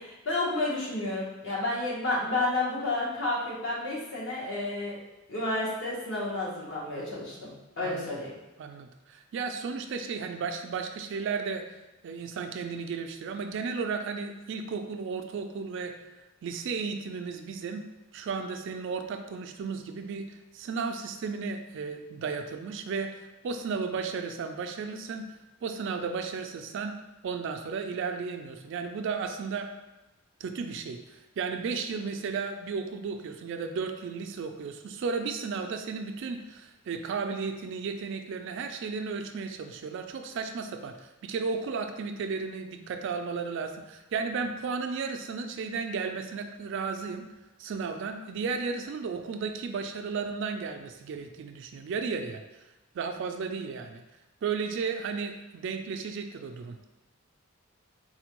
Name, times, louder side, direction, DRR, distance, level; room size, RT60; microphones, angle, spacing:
voice 1, 0.0-5.0 5.3-7.5 7.8-8.3, left 2 dB, 60° left, -5 dB, 1.1 m, -31 dB
voice 2, 7.8-8.2 8.6-11.6 12.0-16.0 16.4-17.8 18.1-25.3 25.6-27.0 27.2-29.7 30.4-47.3 47.6-52.4 52.9-54.0 54.4-56.8, right 5 dB, 60° right, 6 dB, 0.3 m, -34 dB
4.2 x 2.2 x 3.0 m, 1.0 s
head